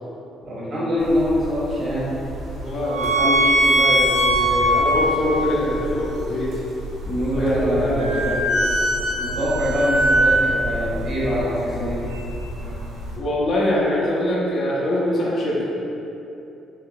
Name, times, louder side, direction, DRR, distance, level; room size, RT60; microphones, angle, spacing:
voice 1, 0.4-2.2 7.0-8.3 9.2-12.0, equal, 50° right, -8 dB, 1.0 m, -24 dB
sound 1, 1.0-13.2, right 1 dB, 85° right, 0.6 m, -23 dB
voice 2, 2.6-6.6 7.3-8.8 13.2-15.6, left 1 dB, 60° left, -5 dB, 0.7 m, -24 dB
3.4 x 2.7 x 2.2 m, 2.9 s
cardioid pair, 80°, 0 cm